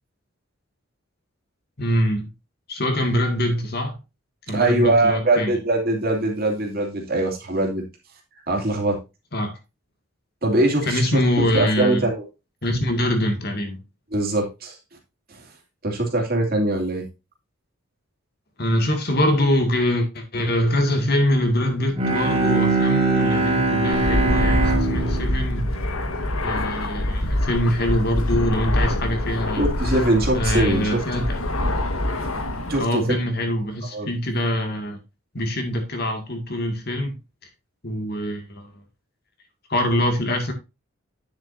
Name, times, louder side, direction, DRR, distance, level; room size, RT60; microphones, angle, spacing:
voice 1, 1.8-2.3 2.7-4.0 4.5-5.6 9.3-9.5 10.8-12.1 12.6-13.8 18.6-25.7 26.4-29.7 30.3-31.4 32.8-35.0 35.3-37.1 37.8-38.7 39.7-40.5, left 1 dB, 50° left, 2.1 m, -24 dB
voice 2, 4.5-7.8 8.5-9.0 10.4-12.2 14.1-14.7 15.3-15.4 15.8-17.0 29.6-31.0 32.7-33.0 33.9-34.1, right 2 dB, 45° right, 2.7 m, -22 dB
Bowed string instrument, 21.9-26.8, right 3 dB, 25° right, 2.4 m, -23 dB
Fixed-wing aircraft airplane, 23.9-32.8, left 1 dB, 85° left, 1.5 m, -25 dB
9.9 x 7.4 x 2.6 m
head